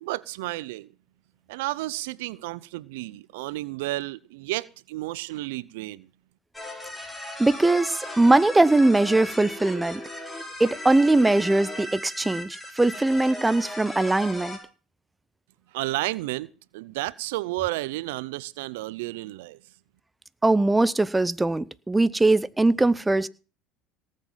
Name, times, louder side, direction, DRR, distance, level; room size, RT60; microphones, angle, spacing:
voice 1, 0.0-0.9 1.5-6.1 15.7-19.6, right 19 dB, 80° right, 0.6 m, -32 dB
sound 1, 6.5-14.6, left 1 dB, 10° left, 5.0 m, -37 dB
voice 2, 7.4-10.0 10.6-14.6 20.4-23.3, right 2 dB, 10° right, 0.7 m, -21 dB
18.5 x 7.5 x 5.6 m
hypercardioid pair, 85°, 0 cm